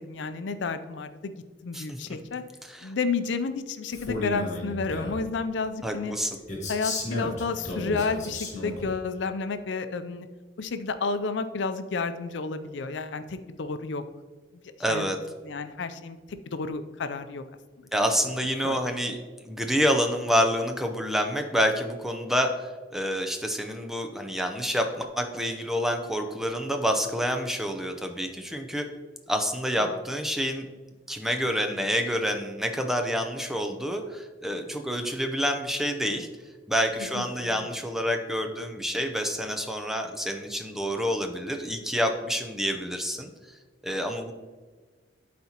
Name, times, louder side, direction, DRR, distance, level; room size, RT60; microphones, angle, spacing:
voice 1, 0.0-1.3 1.6-2.4 2.8-6.1 6.7-10.3 10.6-14.0 14.9-15.1 15.4-16.2 16.5-17.4 17.8-17.9 18.6-19.0 37.2-37.7, left 4 dB, 80° left, 10 dB, 0.5 m, -31 dB
voice 2, 1.7-2.2 2.6-2.9 5.8-6.4 14.8-15.2 17.9-28.9 29.3-30.6 31.1-36.3 36.7-43.3 43.8-44.3, equal, ahead, 5 dB, 0.5 m, -28 dB
Male speech man speaking, 3.9-5.2 6.5-8.9, left 2 dB, 40° left, 1.7 m, -33 dB
11.5 x 4.2 x 2.9 m, 1.4 s
head